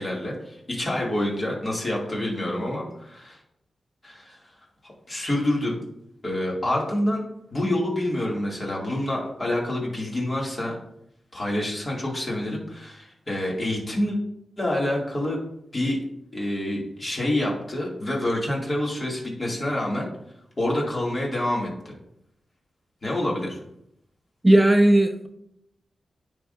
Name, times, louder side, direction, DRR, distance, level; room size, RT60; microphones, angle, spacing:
voice 1, 0.0-3.4 4.0-4.4 4.8-5.8 6.2-7.2 7.5-10.7 11.3-14.2 14.6-15.4 15.7-16.0 16.3-20.1 20.6-21.9 23.0-23.6, left 1 dB, 40° left, -3 dB, 2.4 m, -27 dB
voice 2, 24.4-25.3, right 1 dB, 20° right, 5 dB, 0.6 m, -16 dB
9.7 x 3.7 x 2.6 m, 0.77 s
cardioid pair, 45°, 0 cm